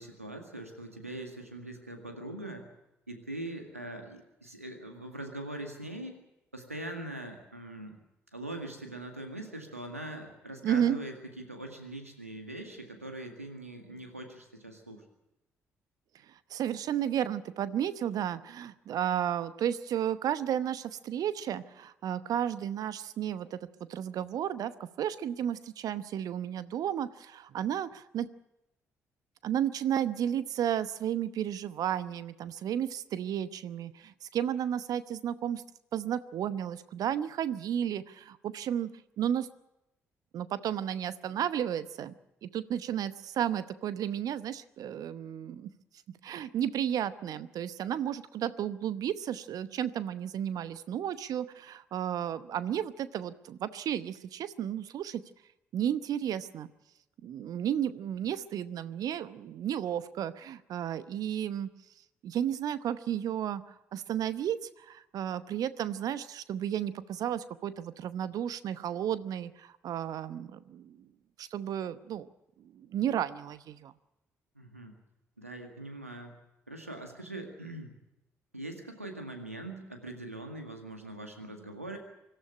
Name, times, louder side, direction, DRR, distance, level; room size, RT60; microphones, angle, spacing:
voice 1, 0.0-2.7 3.1-6.1 6.5-8.0 8.3-15.0 74.6-74.9 75.4-76.3 76.7-77.9 78.5-82.0, right 1 dB, 90° right, 4 dB, 2.0 m, -42 dB
voice 2, 10.6-11.0 16.5-28.3 29.4-35.6 35.9-38.9 39.2-39.5 40.3-42.1 42.4-45.7 46.2-55.2 55.7-56.7 57.2-61.7 62.2-71.0 71.4-72.3 72.6-73.9, right 10 dB, 55° right, 14 dB, 0.9 m, -33 dB
25.5 x 12.5 x 9.8 m, 0.91 s
figure-of-eight pair, 40°, 7 cm